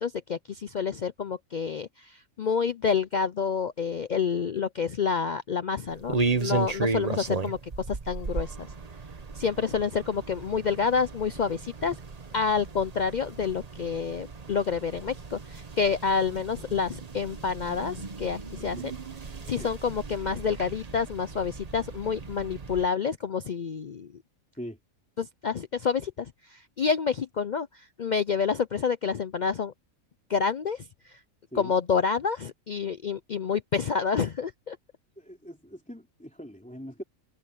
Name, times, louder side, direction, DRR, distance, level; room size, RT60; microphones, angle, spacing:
voice 1, 0.0-7.6 7.9-8.7 9.4-12.0 12.3-18.9 19.5-24.1 25.2-27.7 28.0-29.7 30.3-30.8 31.5-34.8, left 6 dB, 60° left, 0.4 m, -28 dB
sound 1, 5.9-22.9, right 4 dB, 30° right, 1.0 m, -35 dB
voice 2, 35.2-37.0, equal, 5° left, 3.2 m, -41 dB
omnidirectional pair, 1.4 m